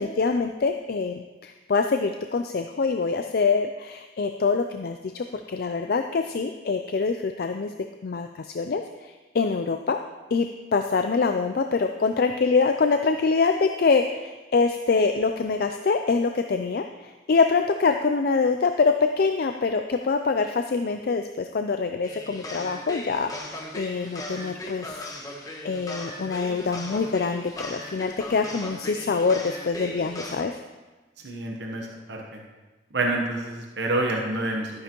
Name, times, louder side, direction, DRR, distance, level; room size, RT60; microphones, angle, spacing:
voice 1, 0.0-7.7 8.0-10.0 10.3-30.5, left 4 dB, 60° left, 6 dB, 0.4 m, -25 dB
sound 1, 22.0-30.4, left 1 dB, 20° left, 1.1 m, -38 dB
voice 2, 31.2-32.4 32.9-34.8, right 2 dB, 80° right, 0 dB, 1.1 m, -28 dB
12.5 x 9.7 x 3.0 m, 1.2 s
head